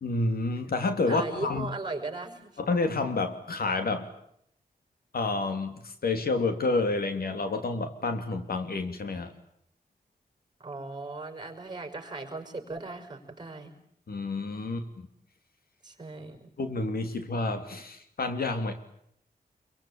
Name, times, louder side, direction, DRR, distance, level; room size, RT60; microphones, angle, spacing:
voice 1, 0.0-1.7 2.6-4.1 5.1-9.3 14.1-15.1 16.6-18.7, left 3 dB, 75° left, 7 dB, 3.1 m, -29 dB
voice 2, 1.0-2.5 10.6-13.7 15.8-16.5, right 3 dB, 25° right, 6 dB, 6.0 m, -38 dB
27.0 x 24.0 x 8.9 m, 0.72 s
wide cardioid pair, 120°, 16 cm